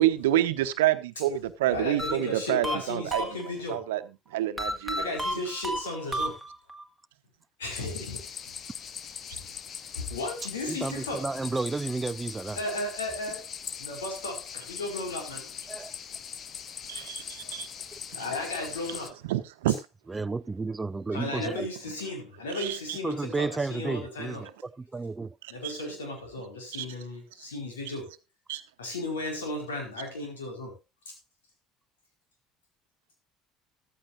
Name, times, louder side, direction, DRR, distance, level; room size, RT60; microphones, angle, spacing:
voice 1, 0.0-3.2 3.7-4.0 4.3-5.0 16.9-17.7 18.1-18.3 19.3-19.8 22.5-23.0 25.6-25.7 26.8-26.9 28.5-28.6, right 13 dB, 75° right, 1.0 m, -27 dB
voice 2, 1.6-3.8 5.0-6.4 7.6-8.5 9.3-9.4 9.9-11.3 12.6-13.5 13.8-15.5 16.9-17.3 17.8-17.9 18.1-19.2 21.1-24.5 25.5-28.1 28.8-30.8 31.1-31.2, left 2 dB, 85° left, 4.7 m, -35 dB
sound 1, 2.0-3.8 4.6-6.8, equal, ahead, 2.0 m, -33 dB
sound 2, 7.7-19.1, left 8 dB, 45° left, 1.0 m, -41 dB
voice 3, 10.7-12.6 15.7-15.9 20.1-21.7 23.0-25.4, right 3 dB, 20° right, 0.5 m, -32 dB
14.0 x 13.5 x 2.6 m
hypercardioid pair, 60°, 0 cm